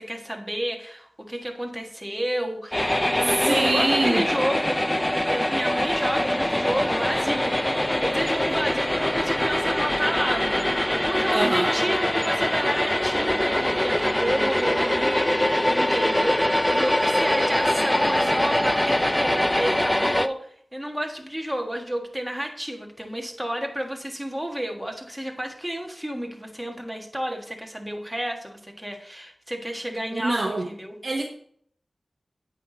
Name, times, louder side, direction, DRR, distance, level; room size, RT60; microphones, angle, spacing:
voice 1, 0.0-4.8 5.3-7.5 8.0-31.0, equal, 5° right, 2 dB, 1.5 m, -31 dB
sound 1, 2.7-20.3, left 1 dB, 15° left, 0.4 m, -23 dB
voice 2, 3.2-4.2 11.3-11.7 30.1-30.6 31.0-31.2, right 2 dB, 55° right, 1 dB, 0.8 m, -24 dB
8.2 x 5.8 x 3.9 m, 0.63 s
wide cardioid pair, 55°, 0 cm